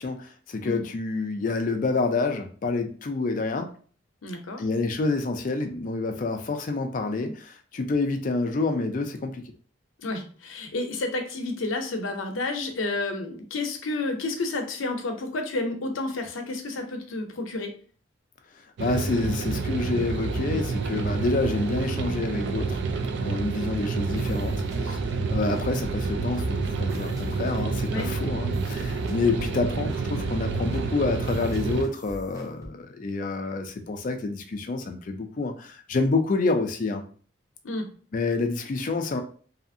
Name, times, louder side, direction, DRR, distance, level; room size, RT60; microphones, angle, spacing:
voice 1, 0.0-3.7 4.6-9.5 18.8-22.8 23.2-25.0 25.3-37.0 38.1-39.2, left 3 dB, 40° left, 5 dB, 0.3 m, -28 dB
voice 2, 4.2-4.6 7.2-7.3 10.0-17.7 27.9-28.1 37.6-37.9, left 2 dB, 85° left, 4 dB, 0.6 m, -30 dB
sound 1, 18.8-31.8, right 4 dB, 60° right, 0.3 m, -28 dB
sound 2, 24.1-32.7, equal, 15° right, 0.6 m, -43 dB
2.7 x 2.4 x 2.6 m, 0.43 s
head